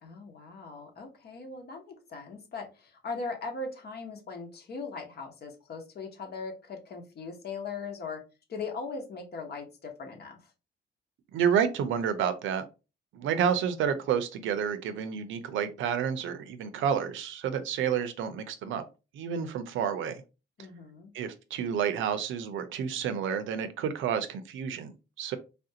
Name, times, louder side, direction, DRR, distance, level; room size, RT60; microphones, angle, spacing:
voice 1, 0.0-8.2 8.5-10.4 20.6-21.1, left 4 dB, 55° left, 1.0 m, -39 dB
voice 2, 11.3-12.6 13.1-18.8 19.1-20.1 21.1-24.9 25.2-25.4, right 8 dB, 80° right, 0.6 m, -29 dB
3.4 x 2.5 x 2.7 m
cardioid pair, 90°, 20 cm